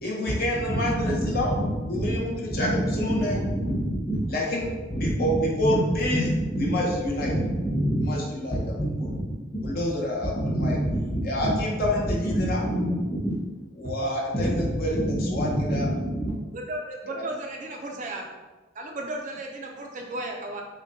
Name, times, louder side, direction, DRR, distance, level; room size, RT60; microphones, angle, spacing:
voice 1, 0.0-1.5 1.9-3.4 4.3-6.3 6.6-7.3 8.0-8.6 9.6-10.8 11.2-12.6 13.8-15.9 17.1-17.2, left 1 dB, 50° left, -3 dB, 0.7 m, -28 dB
voice 2, 3.1-3.8 4.1-4.2 4.9-5.4 5.6-5.8 6.1-6.2 7.2-8.1 8.7-9.1 10.6-11.0 11.4-11.5 12.3-13.3 14.4-14.5 15.5-16.3, right 1 dB, 30° left, -6 dB, 1.2 m, -26 dB
voice 3, 16.5-18.3 18.8-20.6, right 1 dB, 40° right, 1 dB, 0.4 m, -34 dB
6.1 x 2.2 x 2.6 m, 1.2 s
head